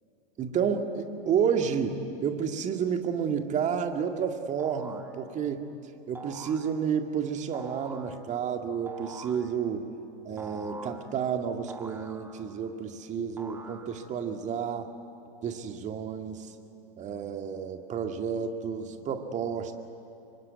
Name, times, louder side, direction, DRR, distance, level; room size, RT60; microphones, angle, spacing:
voice 1, 0.4-5.7 6.1-9.8 10.3-14.9 15.4-16.5 17.0-19.7, right 7 dB, 25° right, 6 dB, 2.0 m, -30 dB
sound 1, 4.6-5.1 6.1-6.7 7.5-8.1 8.9-9.5 10.4-11.1 11.7-12.6 13.4-14.2, right 3 dB, 10° right, 1.9 m, -44 dB
26.0 x 23.5 x 9.5 m, 2.7 s
figure-of-eight pair, 95°, 29 cm